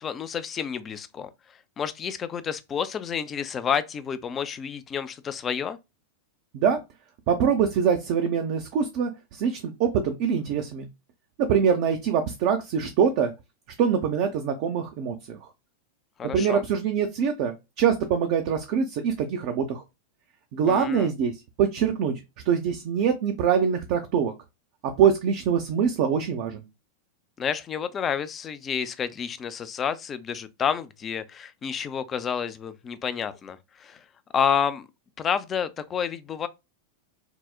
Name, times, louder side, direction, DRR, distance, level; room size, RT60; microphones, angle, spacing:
voice 1, 0.0-5.8 16.2-16.6 20.7-21.1 27.4-34.1 34.3-34.9 35.2-36.5, left 7 dB, 25° left, 0.3 m, -29 dB
voice 2, 7.3-10.9 11.4-13.3 13.8-15.5 16.3-19.8 20.5-21.3 21.6-22.2 22.5-24.3 24.8-26.6, right 7 dB, 45° right, 0.4 m, -24 dB
3.7 x 2.0 x 2.2 m
figure-of-eight pair, 90°, 0 cm